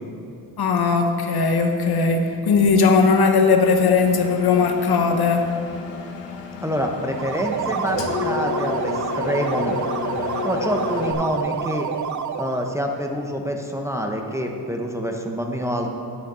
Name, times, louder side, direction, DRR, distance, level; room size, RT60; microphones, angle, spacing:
voice 1, 0.6-5.4, left 4 dB, 60° left, 4 dB, 1.0 m, -18 dB
Engine, 4.0-11.1, left 6 dB, 85° left, 1.1 m, -31 dB
voice 2, 6.6-9.8 10.4-11.9 12.4-15.9, equal, 5° right, 2 dB, 0.9 m, -26 dB
sound 1, 7.1-12.8, right 8 dB, 45° right, 0.5 m, -28 dB
8.3 x 6.5 x 6.8 m, 2.6 s
cardioid pair, 95°, 43 cm